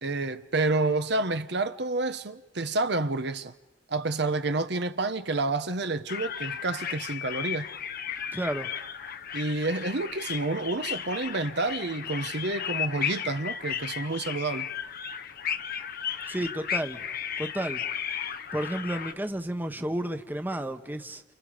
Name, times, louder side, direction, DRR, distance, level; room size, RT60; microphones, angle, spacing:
voice 1, 0.0-3.5 3.9-7.7 9.3-14.7, right 2 dB, 65° right, 1.1 m, -29 dB
sound 1, 6.1-19.1, left 8 dB, 55° left, 0.9 m, -35 dB
voice 2, 8.3-8.7 16.3-17.0 17.4-17.8 18.5-21.2, right 1 dB, 10° right, 1.2 m, -31 dB
29.5 x 29.5 x 5.1 m
head